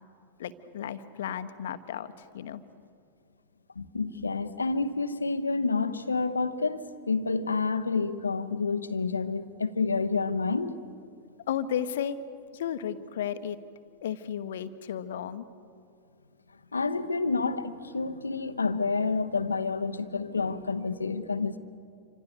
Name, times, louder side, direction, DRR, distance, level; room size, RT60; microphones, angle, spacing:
voice 1, 0.4-2.6 11.5-12.2 12.5-13.6 14.0-15.4, left 9 dB, 60° left, 1.1 m, -33 dB
voice 2, 3.8-10.8 16.7-21.6, left 4 dB, 75° left, 1.0 m, -29 dB
27.5 x 26.0 x 6.8 m
figure-of-eight pair, 90°, 0 cm